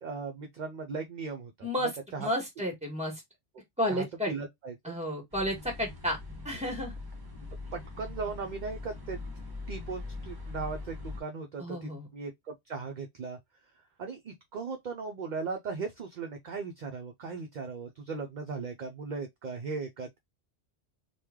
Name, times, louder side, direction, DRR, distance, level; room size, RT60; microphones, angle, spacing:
voice 1, 0.0-1.7 2.1-2.3 3.9-5.0 7.7-9.2 9.7-13.4 14.0-20.2, right 4 dB, 55° right, 0.6 m, -38 dB
voice 2, 1.6-3.2 3.8-4.3 4.8-6.2 6.4-6.9 11.6-12.1, equal, 5° right, 1.2 m, -32 dB
sound 1, 5.3-11.2, left 3 dB, 20° right, 0.9 m, -42 dB
3.1 x 2.3 x 3.4 m
omnidirectional pair, 1.1 m